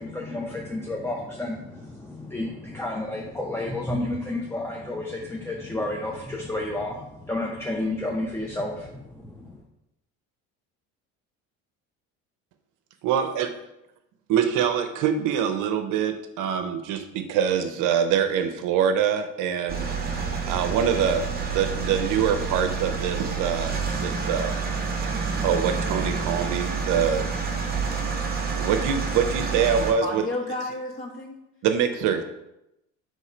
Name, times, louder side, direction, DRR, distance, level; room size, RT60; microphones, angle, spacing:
voice 1, 0.0-9.6, left 2 dB, 5° left, -1 dB, 0.5 m, -31 dB
voice 2, 13.0-13.5 14.3-19.9 20.5-24.7 25.4-27.6 28.5-30.3 31.6-32.2, right 8 dB, 65° right, 7 dB, 0.6 m, -25 dB
sound 1, 19.7-29.9, right 5 dB, 25° right, 0.9 m, -28 dB
voice 3, 30.0-31.4, left 1 dB, 40° left, 0 dB, 1.4 m, -31 dB
3.6 x 3.2 x 4.3 m, 0.87 s
supercardioid pair, 85°, 34 cm